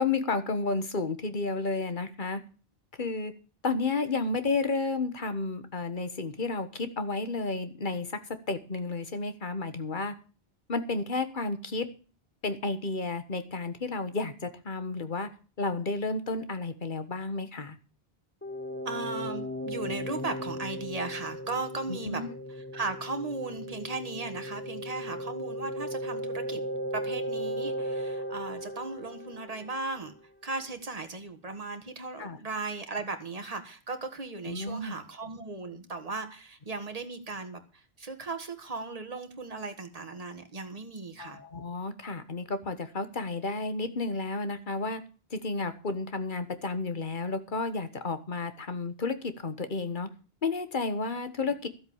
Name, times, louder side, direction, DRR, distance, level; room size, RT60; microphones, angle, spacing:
voice 1, 0.0-2.4 3.0-3.3 3.6-8.2 8.5-10.1 10.7-11.9 12.4-15.3 15.6-17.8 21.9-22.3 32.2-32.4 34.4-34.9 41.2-45.0 45.3-50.1 50.4-51.7, left 3 dB, 50° left, 11 dB, 1.5 m, -32 dB
sound 1, 18.4-30.0, equal, 10° left, 1.1 m, -36 dB
voice 2, 18.8-22.2 22.5-26.6 26.9-30.1 30.4-41.4, right 3 dB, 35° right, 6 dB, 1.7 m, -37 dB
13.0 x 8.0 x 7.1 m, 0.37 s
omnidirectional pair, 1.0 m